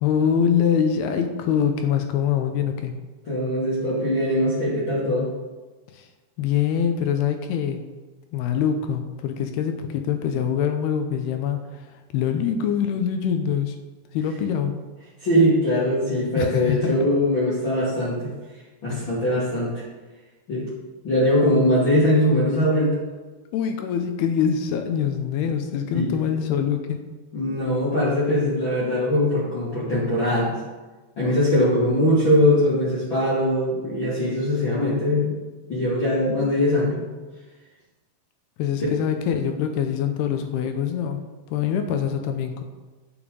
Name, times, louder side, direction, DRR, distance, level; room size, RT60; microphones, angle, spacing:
voice 1, 0.0-2.9 5.9-6.1 6.4-7.9 8.3-11.9 12.1-13.8 14.1-14.7 16.4-17.0 18.9-19.1 23.5-27.0 38.6-41.2 41.5-42.6, left 8 dB, 75° left, 6 dB, 2.5 m, -24 dB
voice 2, 3.3-5.3 9.3-9.4 15.2-18.3 18.8-19.8 20.5-20.7 21.0-22.9 25.9-26.2 27.3-30.6 31.2-35.3 35.7-37.0, left 1 dB, 35° left, -10 dB, 2.4 m, -21 dB
9.8 x 7.1 x 5.2 m, 1.2 s
omnidirectional pair, 5.0 m